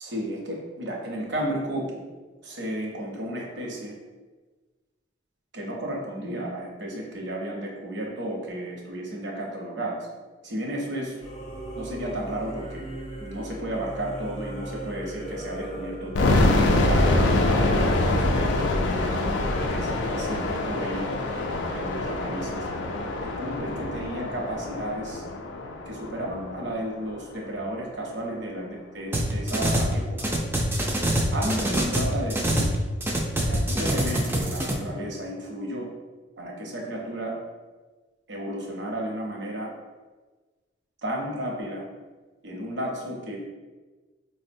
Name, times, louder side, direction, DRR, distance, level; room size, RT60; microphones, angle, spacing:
voice 1, 0.0-1.9 2.4-4.0 5.5-10.1 10.4-11.2 11.8-12.8 13.2-19.1 19.7-21.1 21.7-22.7 23.2-25.2 25.9-30.3 31.3-32.6 33.4-35.9 36.4-37.4 38.3-39.7 41.0-41.8 42.4-43.4, right 1 dB, 70° right, -1 dB, 0.7 m, -33 dB
Singing / Musical instrument, 11.2-16.3, right 1 dB, 35° left, 0.6 m, -37 dB
sound 1, 16.1-27.0, left 2 dB, 80° left, 0.4 m, -25 dB
sound 2, 29.1-29.9 30.2-32.8 33.0-34.7, right 1 dB, 10° right, 0.3 m, -24 dB
4.4 x 2.0 x 2.6 m, 1.3 s
head